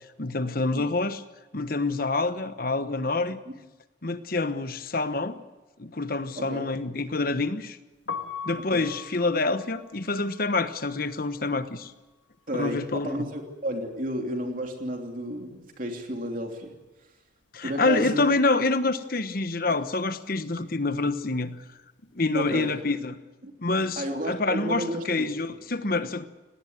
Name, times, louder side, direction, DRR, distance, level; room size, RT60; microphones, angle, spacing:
voice 1, 0.2-1.2 1.5-3.4 4.0-5.4 5.8-7.8 8.4-11.9 12.5-13.3 17.5-21.6 22.1-23.2 23.6-26.2, left 3 dB, 50° left, 11 dB, 1.1 m, -27 dB
voice 2, 6.3-6.7 8.7-8.9 12.5-16.7 17.6-18.3 19.7-19.8 22.3-22.7 23.4-23.5 23.9-25.3, equal, 45° right, 3 dB, 3.0 m, -32 dB
Piano, 7.9-13.9 14.1-15.7 16.0-22.4, left 5 dB, 75° left, 1.7 m, -43 dB
19.0 x 18.5 x 9.4 m, 1.1 s
head